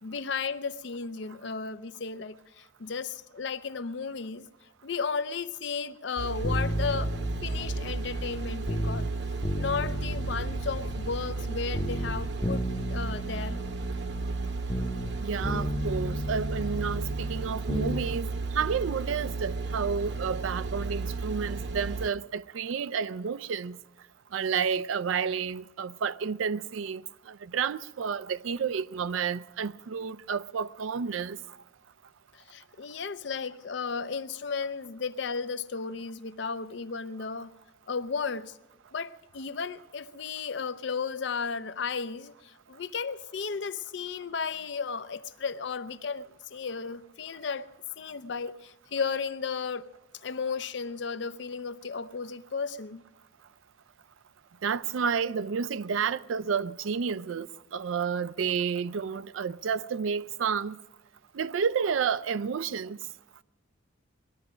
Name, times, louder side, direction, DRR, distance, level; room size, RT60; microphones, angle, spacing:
voice 1, 0.0-4.5 4.8-9.1 9.6-13.6 32.5-37.5 37.9-38.5 38.9-47.7 48.0-49.8 50.2-53.0, left 5 dB, 65° left, 0.5 m, -34 dB
sound 1, 6.2-22.1, right 3 dB, 60° right, 0.9 m, -34 dB
sound 2, 6.4-9.1 9.4-11.5 11.7-15.2 15.4-18.0 18.3-18.4, left 1 dB, 15° left, 0.7 m, -33 dB
voice 2, 15.2-23.8 24.3-31.6 54.6-60.8 61.3-63.0, right 6 dB, 85° right, 0.4 m, -30 dB
20.0 x 12.5 x 5.0 m
head